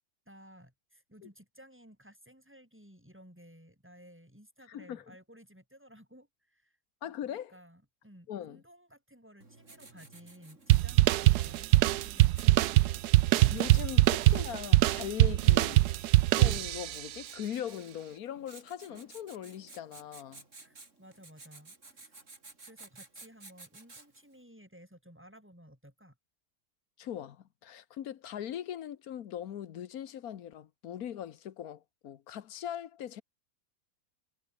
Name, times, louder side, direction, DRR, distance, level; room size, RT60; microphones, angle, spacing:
voice 1, 0.3-6.8 7.0-12.4 20.6-22.1 22.6-26.2, equal, 5° right, 7.7 m, -56 dB
voice 2, 4.7-5.2 7.0-7.5 8.3-8.6 13.5-15.9 16.4-20.4 27.0-33.2, left 10 dB, 65° left, 1.4 m, -40 dB
Writing, 9.4-24.3, right 3 dB, 50° right, 3.9 m, -55 dB
sound 1, 10.7-17.1, right 16 dB, 80° right, 1.1 m, -23 dB
omnidirectional pair, 1.7 m